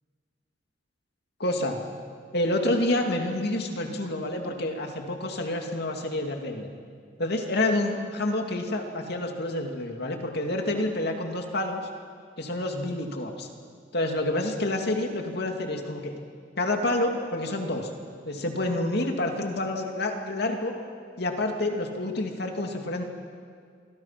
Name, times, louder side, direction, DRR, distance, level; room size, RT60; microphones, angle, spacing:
voice 1, 1.4-1.8 2.3-6.7 7.2-11.8 12.4-13.5 13.9-16.2 16.6-17.9 18.2-20.7 21.2-23.0, left 1 dB, 60° left, 3 dB, 2.6 m, -28 dB
27.5 x 24.0 x 6.0 m, 2.2 s
head